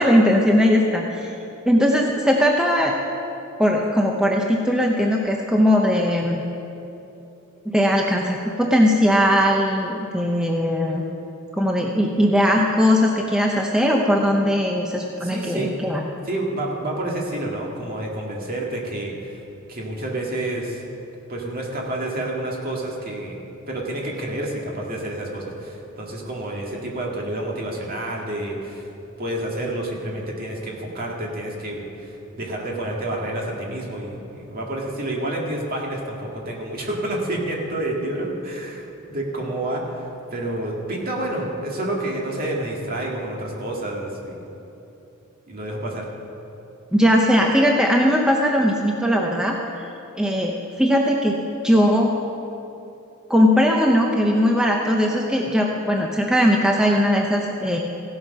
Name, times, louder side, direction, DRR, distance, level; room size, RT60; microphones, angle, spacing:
voice 1, 0.0-1.3 1.7-2.9 3.6-6.4 7.7-11.0 11.5-16.0 46.9-49.6 50.2-51.4 51.6-52.1 53.3-57.8, equal, 5° right, 0 dB, 0.7 m, -19 dB
voice 2, 15.2-15.7 16.2-19.4 19.7-20.8 21.3-23.4 23.7-28.9 29.2-38.8 39.1-44.4 45.5-46.1, right 1 dB, 45° right, -1 dB, 2.0 m, -29 dB
16.0 x 7.9 x 5.5 m, 2.9 s
head